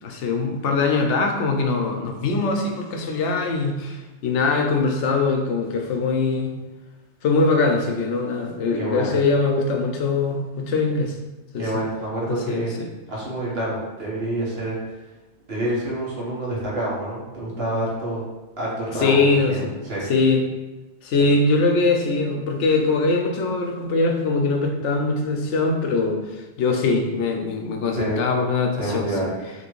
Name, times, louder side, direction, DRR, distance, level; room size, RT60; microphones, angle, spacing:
voice 1, 0.0-6.5 7.2-11.2 11.5-11.8 12.3-12.9 19.0-19.7 20.0-20.4 21.0-29.1, left 3 dB, 85° left, 3 dB, 0.9 m, -22 dB
voice 2, 8.8-9.2 11.6-12.7 13.1-14.8 15.5-18.2 18.6-20.0 21.2-21.3 27.9-28.2 28.8-29.3, right 1 dB, 60° right, -5 dB, 1.3 m, -27 dB
3.0 x 3.0 x 4.5 m, 1.1 s
omnidirectional pair, 1.2 m